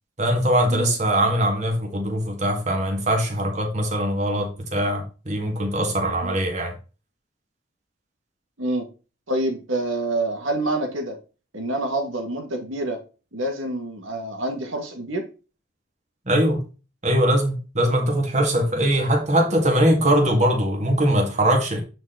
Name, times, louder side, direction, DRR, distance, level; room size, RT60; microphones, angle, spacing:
voice 1, 0.2-6.8 16.3-16.6 17.0-21.8, right 1 dB, 35° right, 2.1 m, -21 dB
voice 2, 9.3-11.2 11.5-13.0 13.3-15.3, right 1 dB, 85° right, 2.0 m, -27 dB
9.2 x 4.4 x 3.9 m
head